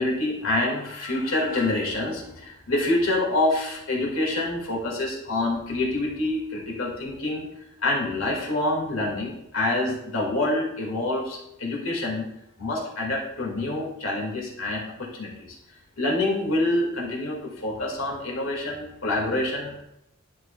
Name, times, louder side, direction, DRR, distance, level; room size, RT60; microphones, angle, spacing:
voice 1, 0.0-12.3 12.6-15.5 16.0-19.8, left 2 dB, 85° left, -2 dB, 2.1 m, -27 dB
11.0 x 4.6 x 2.3 m, 0.80 s
head